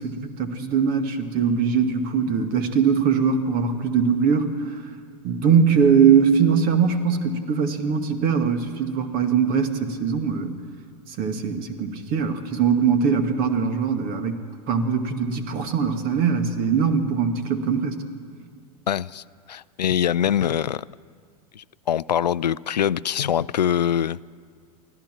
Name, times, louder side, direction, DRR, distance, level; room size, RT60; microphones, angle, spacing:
voice 1, 0.0-4.8 5.2-10.6 11.1-18.0, right 6 dB, 45° right, 2.1 m, -21 dB
voice 2, 18.9-20.9 21.6-24.2, left 9 dB, 85° left, 0.4 m, -24 dB
24.0 x 15.0 x 7.6 m
hypercardioid pair, 90°, 21 cm